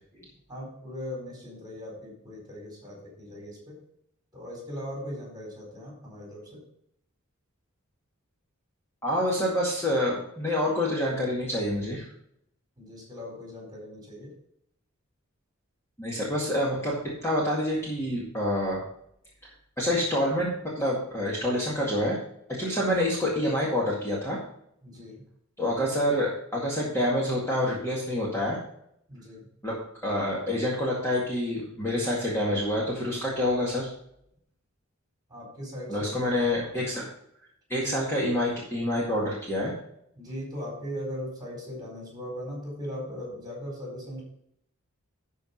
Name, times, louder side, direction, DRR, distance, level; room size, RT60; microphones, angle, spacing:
voice 1, 0.1-3.8 4.3-6.6 12.8-14.3 24.8-25.2 29.1-29.5 35.3-36.4 37.7-37.9 40.2-44.2, equal, 20° right, -1 dB, 4.1 m, -39 dB
voice 2, 9.0-12.1 16.0-18.8 19.8-20.5 20.8-22.2 22.5-24.4 25.6-28.6 29.6-33.9 35.9-37.1 37.7-39.7, left 1 dB, 10° left, -5 dB, 2.0 m, -27 dB
12.0 x 4.8 x 5.4 m, 0.72 s
head